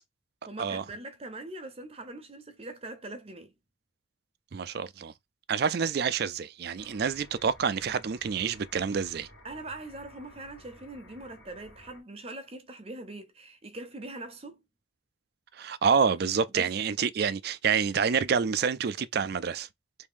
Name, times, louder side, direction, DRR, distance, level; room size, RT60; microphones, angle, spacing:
voice 1, 0.5-3.5 9.4-14.6 16.5-16.7, right 2 dB, 30° right, 0.7 m, -42 dB
voice 2, 4.5-5.1 5.5-9.3 15.5-19.7, right 6 dB, 50° right, 0.4 m, -28 dB
sound 1, 6.8-12.0, equal, 75° left, 2.1 m, -54 dB
3.5 x 2.7 x 3.6 m
head